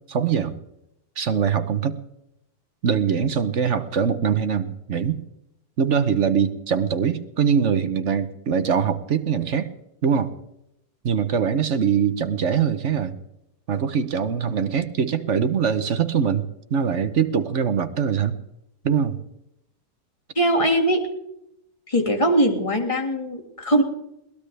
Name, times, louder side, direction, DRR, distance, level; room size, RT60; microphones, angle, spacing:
voice 1, 0.1-0.6 1.2-2.0 2.8-5.2 5.8-9.7 10.0-10.3 11.0-13.2 13.7-16.4 16.7-18.3 18.8-19.2, right 7 dB, 50° right, 11 dB, 1.0 m, -22 dB
voice 2, 20.4-21.0 21.9-23.8, right 1 dB, 20° left, 3 dB, 2.0 m, -21 dB
22.0 x 18.5 x 3.4 m, 0.84 s
omnidirectional pair, 2.0 m